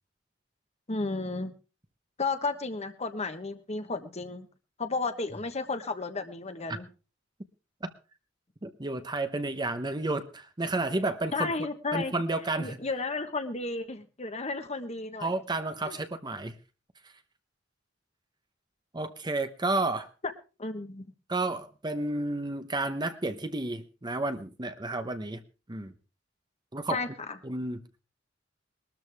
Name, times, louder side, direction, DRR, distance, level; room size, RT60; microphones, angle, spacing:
voice 1, 0.9-1.5 2.2-4.5 4.8-6.9 11.3-12.1 12.6-15.3 15.8-16.0 20.6-21.1 26.9-27.4, left 3 dB, 35° left, 8 dB, 1.3 m, -33 dB
voice 2, 8.6-11.5 11.9-12.8 15.2-16.5 18.9-20.1 21.3-25.4 25.7-25.9 26.7-27.0 27.4-28.0, right 2 dB, 20° right, 10 dB, 0.9 m, -31 dB
21.0 x 13.0 x 3.5 m, 0.33 s
head